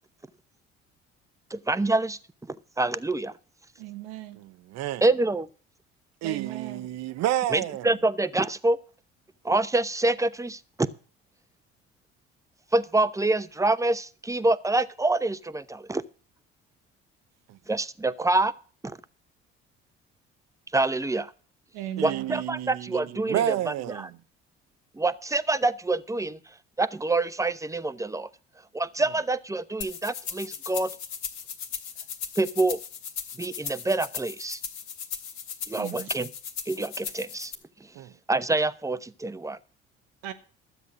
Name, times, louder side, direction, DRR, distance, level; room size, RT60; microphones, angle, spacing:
voice 1, 1.5-2.2 2.5-3.3 5.0-5.5 7.5-8.8 9.4-10.9 12.7-16.0 17.7-18.5 18.8-19.0 20.7-21.3 22.0-24.1 24.9-26.4 26.8-28.3 28.7-30.9 32.4-32.8 33.4-34.6 35.7-36.3 36.7-37.5 38.3-39.6, right 2 dB, 10° right, 0.9 m, -26 dB
voice 2, 3.8-4.4 6.2-6.9 21.7-22.4 35.8-36.1 40.2-40.3, right 12 dB, 85° right, 1.3 m, -37 dB
voice 3, 4.4-5.1 6.2-8.0 17.5-17.6 22.0-24.2 37.9-38.1, right 13 dB, 65° right, 0.8 m, -30 dB
sound 1, 29.8-37.5, left 7 dB, 70° left, 1.9 m, -37 dB
13.0 x 7.9 x 6.1 m
hypercardioid pair, 60°, 29 cm